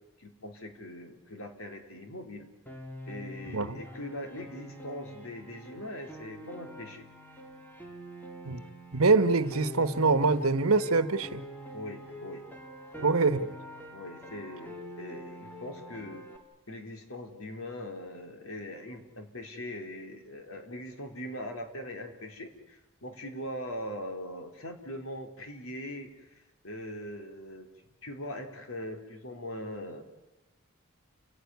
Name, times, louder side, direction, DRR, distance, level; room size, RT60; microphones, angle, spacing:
voice 1, 0.2-2.5 3.1-7.1 11.7-12.4 13.0-13.1 13.4-13.5 13.9-16.3 16.7-27.7 28.0-30.1, left 1 dB, 75° left, 4 dB, 3.5 m, -41 dB
Piano, 2.7-16.4, equal, 10° left, 2.7 m, -45 dB
voice 2, 8.9-11.4 13.0-13.4, right 3 dB, 80° right, 12 dB, 1.3 m, -24 dB
29.5 x 17.0 x 9.5 m, 1.1 s
head